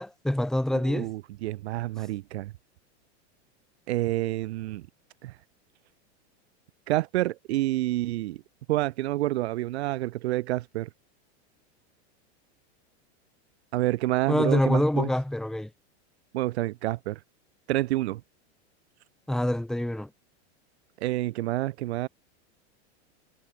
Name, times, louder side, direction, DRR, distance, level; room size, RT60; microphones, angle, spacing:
voice 1, 0.0-1.1 14.3-15.7 19.3-20.1, left 1 dB, ahead, 3.3 m, -25 dB
voice 2, 0.7-2.5 3.9-4.8 5.2-5.4 6.9-8.4 8.7-10.9 13.7-15.1 16.3-17.2 17.7-18.2 21.0-22.1, right 16 dB, 65° right, 2.8 m, -28 dB
supercardioid pair, 155°, 35 cm